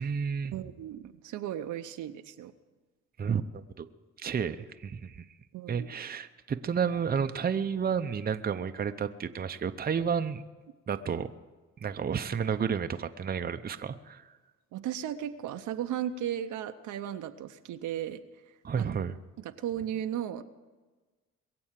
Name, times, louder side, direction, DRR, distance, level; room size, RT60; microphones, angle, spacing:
voice 1, 0.0-0.5 3.2-3.9 4.2-5.3 5.7-10.4 10.9-11.3 11.8-14.2 18.6-19.2, right 7 dB, 30° right, 9 dB, 0.7 m, -31 dB
voice 2, 0.5-2.5 5.5-5.9 14.7-18.9 19.4-20.4, right 10 dB, 75° right, 8 dB, 0.8 m, -36 dB
22.0 x 7.8 x 7.5 m, 1.3 s
cardioid pair, 90°, 30 cm